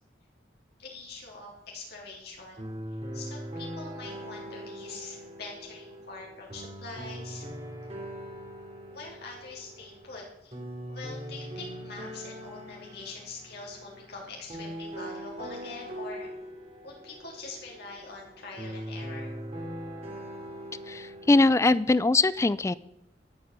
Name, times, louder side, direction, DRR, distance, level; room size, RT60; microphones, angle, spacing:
voice 1, 0.8-2.6 3.1-7.5 8.9-10.5 10.9-16.3 16.8-19.3, left 3 dB, 60° left, -2 dB, 3.4 m, -44 dB
sound 1, 2.6-21.4, equal, 35° right, 3.1 m, -41 dB
voice 2, 20.9-22.7, left 2 dB, 15° left, 18 dB, 0.4 m, -22 dB
13.0 x 8.8 x 6.8 m, 0.84 s
head